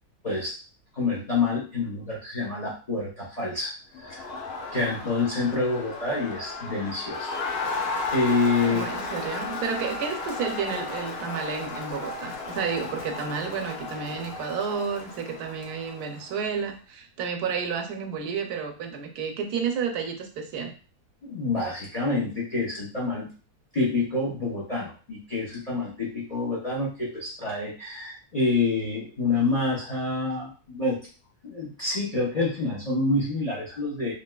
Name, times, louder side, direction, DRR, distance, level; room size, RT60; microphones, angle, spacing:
voice 1, 0.2-0.5 0.9-3.7 4.0-4.2 4.7-7.3 8.1-8.9 21.2-23.3 23.7-31.0 31.4-34.1, left 3 dB, 35° left, -5 dB, 0.7 m, -27 dB
Crowd, 3.9-16.5, left 3 dB, 80° left, 1.3 m, -34 dB
voice 2, 8.7-20.7, right 6 dB, 80° right, 4 dB, 1.1 m, -31 dB
3.1 x 2.7 x 2.3 m, 0.36 s
omnidirectional pair, 1.7 m